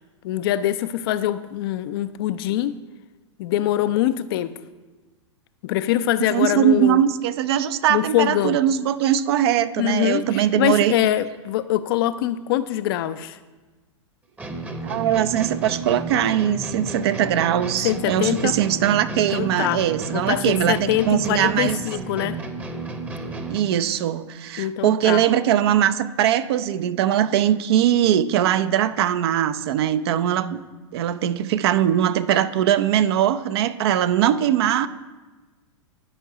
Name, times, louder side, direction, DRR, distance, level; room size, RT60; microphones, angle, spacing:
voice 1, 0.2-2.8 3.4-4.5 5.6-7.0 7.9-8.6 9.8-13.4 17.8-18.6 19.2-19.8 20.1-22.4 24.6-25.2, left 12 dB, 50° left, 13 dB, 0.5 m, -23 dB
voice 2, 6.3-10.9 14.8-21.8 23.5-30.6 30.9-34.9, right 10 dB, 55° right, 13 dB, 0.6 m, -21 dB
sound 1, 14.4-23.8, right 2 dB, 10° right, 0.9 m, -32 dB
11.0 x 5.4 x 4.9 m, 1.3 s
hypercardioid pair, 105°, 16 cm